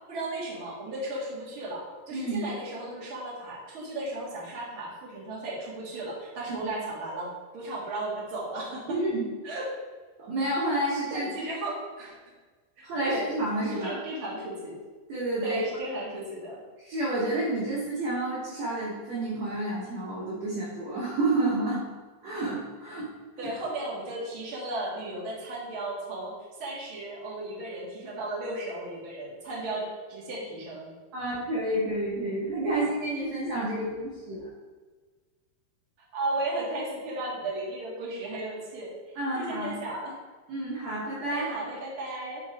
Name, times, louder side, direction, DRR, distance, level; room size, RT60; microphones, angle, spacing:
voice 1, 0.1-9.0 9.4-9.7 11.1-12.1 12.8-13.3 13.8-14.8 15.4-16.6 23.4-26.3 26.6-30.9 36.1-38.9 39.3-40.2 41.3-42.4, right 1 dB, 50° right, -5 dB, 1.7 m, -35 dB
voice 2, 2.1-2.4 6.6-6.7 8.9-9.3 10.2-11.3 12.8-14.0 15.1-15.6 16.8-21.8 22.2-23.1 23.4-23.5 31.1-34.5 39.1-39.7 40.5-41.5, right 1 dB, 75° right, -7 dB, 1.5 m, -30 dB
11.0 x 4.5 x 3.6 m, 1.4 s
omnidirectional pair, 5.3 m